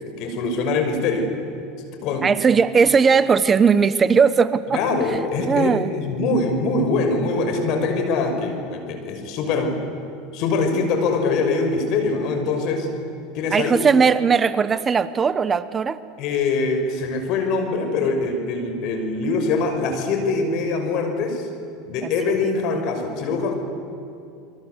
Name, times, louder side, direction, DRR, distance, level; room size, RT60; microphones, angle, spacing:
voice 1, 0.2-1.3 2.0-2.3 4.7-9.8 10.3-12.9 13.3-13.7 16.2-21.5 21.9-23.6, left 3 dB, 60° left, 6 dB, 5.8 m, -23 dB
voice 2, 2.2-4.8 5.1-5.9 13.5-16.0 22.0-22.1, right 5 dB, 25° right, 14 dB, 1.0 m, -18 dB
29.5 x 23.0 x 8.2 m, 2.7 s
supercardioid pair, 100°, 0 cm